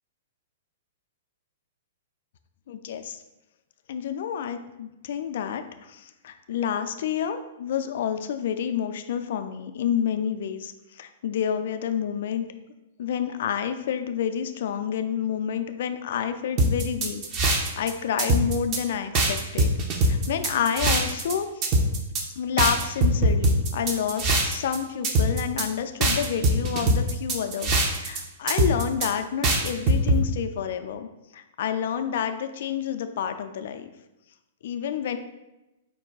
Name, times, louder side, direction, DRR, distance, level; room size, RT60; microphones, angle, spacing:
voice 1, 2.7-3.2 3.9-12.5 13.0-21.5 22.4-27.7 28.0-31.1 31.3-33.9 34.6-35.2, left 8 dB, 60° left, 8 dB, 0.3 m, -29 dB
sound 1, 16.6-17.9 18.2-18.8 19.1-21.3 21.6-22.2 22.6-24.8 25.0-25.7 26.0-28.2 28.5-29.1 29.4-30.2, right 1 dB, 35° right, 0.6 m, -22 dB
5.3 x 2.2 x 3.8 m, 0.97 s
figure-of-eight pair, 110°, 0 cm